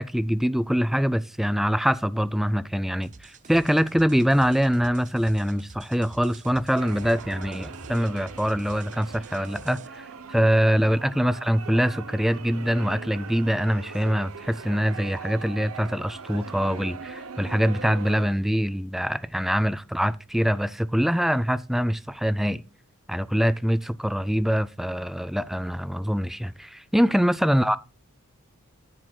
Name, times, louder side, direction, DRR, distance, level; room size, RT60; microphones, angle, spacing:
voice 1, 0.0-22.6 23.1-27.8, equal, ahead, 0.3 m, -24 dB
sound 1, 3.0-9.9, right 4 dB, 35° right, 0.6 m, -48 dB
sound 2, 6.7-18.3, right 5 dB, 70° right, 0.8 m, -41 dB
13.5 x 7.7 x 2.3 m
head